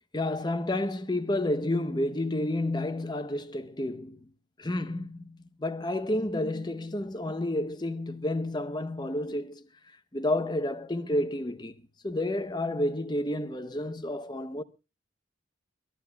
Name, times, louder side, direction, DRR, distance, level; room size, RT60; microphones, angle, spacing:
voice 1, 0.1-4.3 4.6-9.7 10.1-11.8 12.0-14.6, left 1 dB, 20° left, 0.8 m, -30 dB
24.5 x 13.5 x 2.3 m
head